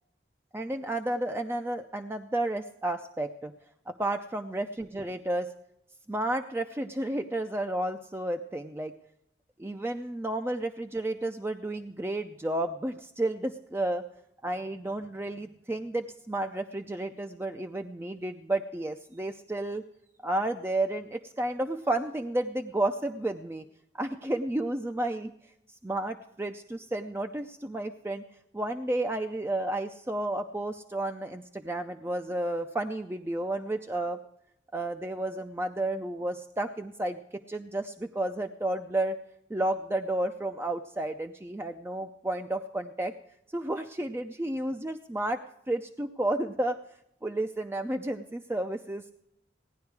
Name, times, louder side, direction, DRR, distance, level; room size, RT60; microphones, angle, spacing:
voice 1, 0.5-3.5 3.9-5.5 6.1-8.9 9.6-14.0 14.4-19.8 20.2-23.7 23.9-25.3 25.7-28.2 28.5-34.2 34.7-39.2 39.5-43.1 43.5-45.4 45.7-46.8 47.2-49.1, right 1 dB, 15° right, 7 dB, 0.5 m, -32 dB
17.0 x 10.5 x 4.6 m, 0.78 s
head